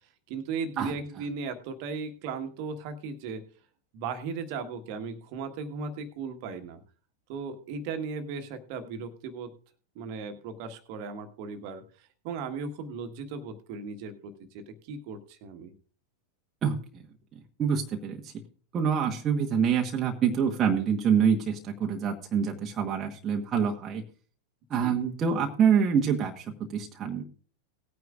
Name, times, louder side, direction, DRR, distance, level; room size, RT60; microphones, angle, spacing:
voice 1, 0.3-3.4 3.9-6.8 7.3-9.5 9.9-15.7 24.8-25.0, right 5 dB, 45° right, 7 dB, 1.5 m, -37 dB
voice 2, 16.6-17.0 17.6-18.3 18.7-24.0 24.7-27.2, right 7 dB, 25° right, 1 dB, 1.2 m, -26 dB
18.5 x 9.3 x 2.5 m, 0.39 s
figure-of-eight pair, 90°, 0 cm